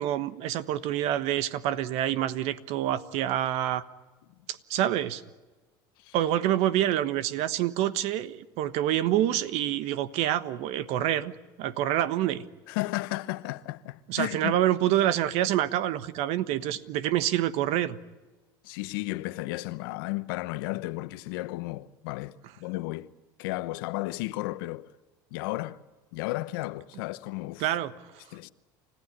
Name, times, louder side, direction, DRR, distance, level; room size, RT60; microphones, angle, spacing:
voice 1, 0.0-3.8 4.5-5.2 6.1-11.3 11.6-12.4 14.1-18.0 27.6-27.9, right 12 dB, 65° right, 1.3 m, -27 dB
voice 2, 12.7-14.6 18.6-23.1 23.4-24.9 25.3-25.8 26.1-27.7 28.3-28.5, left 19 dB, 80° left, 0.9 m, -33 dB
29.5 x 15.0 x 9.7 m
supercardioid pair, 95°, 12 cm